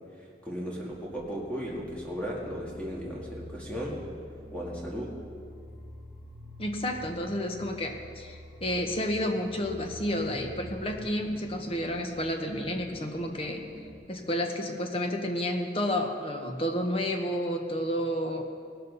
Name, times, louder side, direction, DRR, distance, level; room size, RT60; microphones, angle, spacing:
voice 1, 0.2-4.0 4.5-5.1, equal, 5° left, -4 dB, 2.1 m, -36 dB
sound 1, 0.9-13.9, left 1 dB, 15° right, 2.2 m, -47 dB
voice 2, 6.6-13.6 14.1-18.4, equal, 30° left, 4 dB, 1.2 m, -31 dB
18.0 x 12.5 x 4.1 m, 2.3 s
head